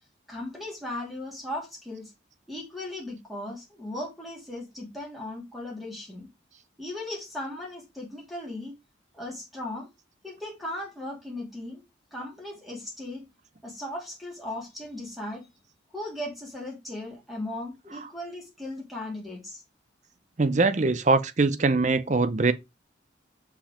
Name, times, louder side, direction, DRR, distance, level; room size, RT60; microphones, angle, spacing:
voice 1, 0.3-2.1 2.5-6.3 6.8-8.8 9.1-9.9 10.2-11.8 12.1-13.2 13.6-15.5 15.9-19.6, left 1 dB, ahead, 2.9 m, -37 dB
voice 2, 20.4-22.5, right 3 dB, 40° right, 0.6 m, -22 dB
5.5 x 4.9 x 5.1 m
head